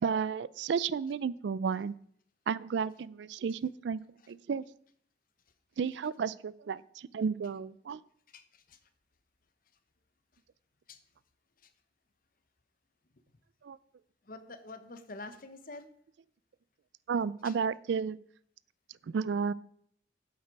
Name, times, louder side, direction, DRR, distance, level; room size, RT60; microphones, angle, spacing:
voice 1, 0.0-1.9 2.5-4.0 4.3-4.6 5.8-8.0 13.6-13.8 17.1-18.2 19.1-19.5, right 6 dB, 70° right, 20 dB, 0.3 m, -32 dB
voice 2, 8.3-8.9 10.9-11.0 11.6-11.7 14.2-15.9 17.4-17.6, left 2 dB, 50° left, 10 dB, 1.0 m, -47 dB
8.1 x 7.8 x 5.2 m, 0.64 s
head